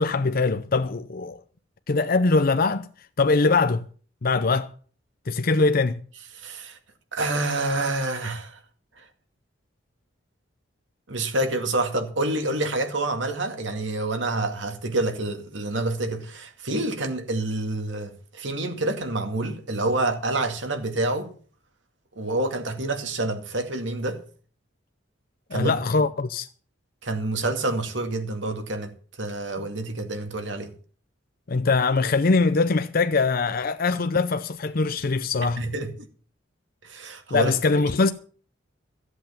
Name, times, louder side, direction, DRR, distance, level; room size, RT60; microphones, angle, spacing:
voice 1, 0.0-1.4 1.9-2.9 3.2-3.8 4.2-4.7 5.3-6.0 25.5-26.5 31.5-35.6 37.3-38.1, left 3 dB, 50° left, 0.6 m, -22 dB
voice 2, 6.3-6.8 7.1-8.6 9.0-9.1 11.1-21.3 22.2-24.2 25.5-25.7 27.0-30.7 35.6-36.1 36.8-37.8, right 2 dB, 75° right, 2.2 m, -28 dB
15.0 x 7.9 x 7.3 m
head